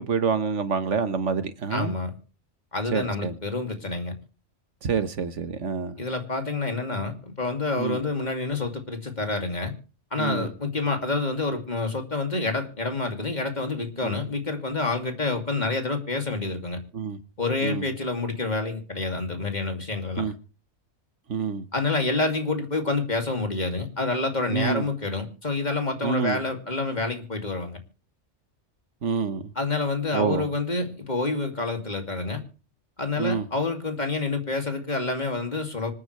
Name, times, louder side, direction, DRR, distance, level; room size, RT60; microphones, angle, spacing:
voice 1, 0.0-1.9 2.9-3.3 4.8-6.0 7.8-8.0 10.2-10.5 14.0-14.1 16.9-17.2 17.6-17.8 20.2-20.3 21.3-21.6 24.5-24.8 26.0-26.4 29.0-29.4 30.1-30.4 33.2-33.4, right 5 dB, 85° right, 1.6 m, -27 dB
voice 2, 1.7-2.2 2.7-4.1 6.0-9.7 10.1-16.8 17.4-20.3 21.7-27.8 29.5-32.4 33.0-35.9, left 3 dB, 40° left, 2.8 m, -28 dB
26.0 x 9.5 x 3.3 m
omnidirectional pair, 1.2 m